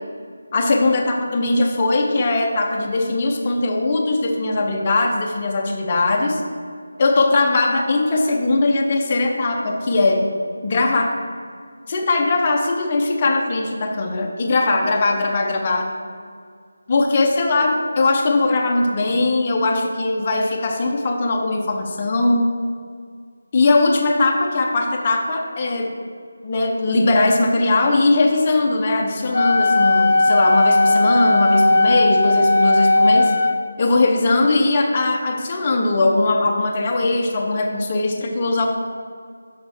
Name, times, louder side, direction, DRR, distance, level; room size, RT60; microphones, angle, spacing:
voice 1, 0.5-6.4 7.0-10.3 10.6-11.2 11.9-15.9 16.9-22.5 23.5-25.9 26.4-33.3 33.8-38.7, left 2 dB, 30° left, 1 dB, 1.0 m, -20 dB
Wind instrument woodwind instrument, 29.3-33.6, left 2 dB, 65° left, 0.9 m, -16 dB
6.6 x 6.1 x 4.5 m, 2.1 s
figure-of-eight pair, 160°, 0 cm